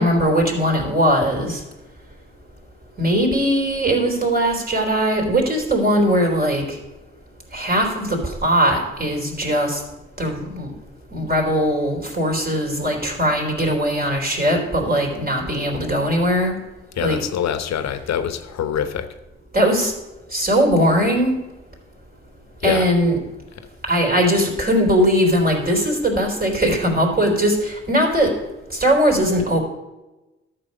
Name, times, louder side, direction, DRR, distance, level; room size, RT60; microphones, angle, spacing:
voice 1, 0.0-1.6 3.0-6.8 7.5-9.8 10.2-10.7 11.1-16.6 17.0-17.2 19.5-19.9 20.3-21.4 22.6-23.2 23.9-28.3 28.7-29.6, equal, 30° right, 1 dB, 3.7 m, -20 dB
voice 2, 17.0-19.1 22.6-22.8, left 9 dB, 65° left, 10 dB, 1.1 m, -24 dB
12.5 x 6.8 x 5.3 m, 1.1 s
hypercardioid pair, 40°, 30 cm